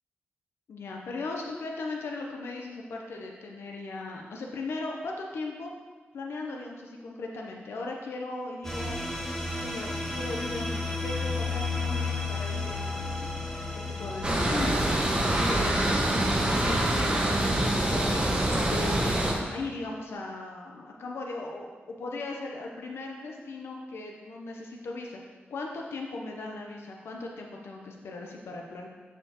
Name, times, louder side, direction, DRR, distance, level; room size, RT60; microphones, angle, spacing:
voice 1, 0.7-5.7 6.1-9.0 9.5-13.4 14.0-14.8 15.4-18.2 18.6-28.9, left 3 dB, 85° left, 1 dB, 0.7 m, -38 dB
sound 1, 8.6-15.8, left 3 dB, 10° left, 1.2 m, -33 dB
sound 2, 14.2-19.3, right 1 dB, 25° right, 1.3 m, -25 dB
6.8 x 6.6 x 2.9 m, 1.4 s
cardioid pair, 70°, 4 cm